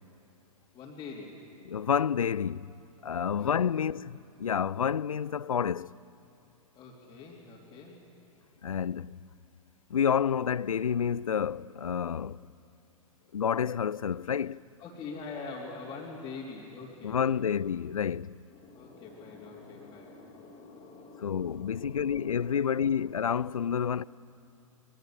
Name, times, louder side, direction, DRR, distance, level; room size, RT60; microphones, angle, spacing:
voice 1, 0.7-1.4 3.3-3.9 6.7-8.0 14.8-17.6 18.5-23.1, left 4 dB, 20° left, 3.1 m, -45 dB
voice 2, 1.6-2.7 3.0-6.0 8.6-9.2 9.9-12.5 13.3-14.6 17.0-18.4 21.2-24.0, left 7 dB, 75° left, 0.4 m, -29 dB
23.5 x 21.5 x 7.6 m
figure-of-eight pair, 105°, 18 cm